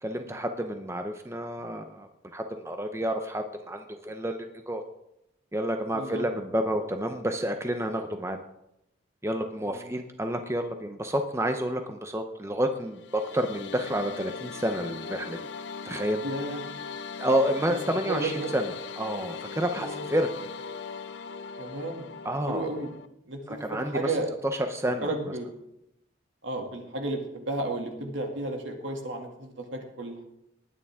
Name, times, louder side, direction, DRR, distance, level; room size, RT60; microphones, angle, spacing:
voice 1, 0.0-4.8 5.5-8.4 9.2-15.4 15.8-16.2 17.2-18.7 19.0-20.3 22.2-22.7 23.5-24.2 24.5-25.1, equal, 15° right, 6 dB, 0.8 m, -29 dB
voice 2, 5.9-6.2 9.7-9.9 16.2-16.6 17.7-17.8 18.1-18.5 19.8-20.0 21.6-22.1 22.5-22.9 23.3-24.3 25.0-25.5 26.4-30.3, right 2 dB, 80° right, 2 dB, 2.5 m, -33 dB
sound 1, 12.9-23.1, left 5 dB, 70° left, 0.7 m, -39 dB
19.5 x 9.7 x 3.6 m, 0.83 s
head